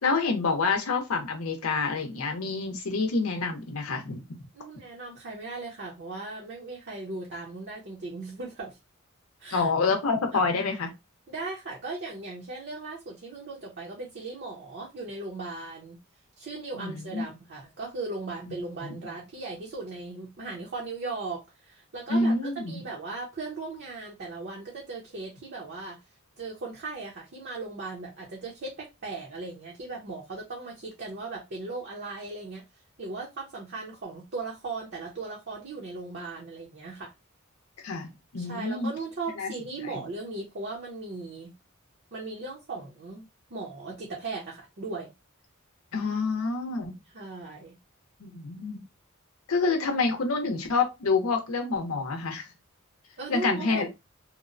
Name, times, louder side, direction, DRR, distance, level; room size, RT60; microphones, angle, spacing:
voice 1, 0.0-4.2 9.5-10.9 16.7-17.3 18.8-18.9 22.1-22.8 37.8-38.9 39.4-39.5 39.8-40.0 45.9-46.9 48.2-48.8 49.5-52.5 53.3-53.9, left 4 dB, 90° left, 0.6 m, -27 dB
voice 2, 4.5-8.8 9.4-9.7 10.3-10.4 11.3-16.0 16.4-26.0 26.4-32.6 33.0-37.1 38.4-41.5 42.1-45.1 47.1-47.8 53.2-53.9, right 3 dB, 50° right, 0.6 m, -38 dB
2.9 x 2.0 x 2.5 m
head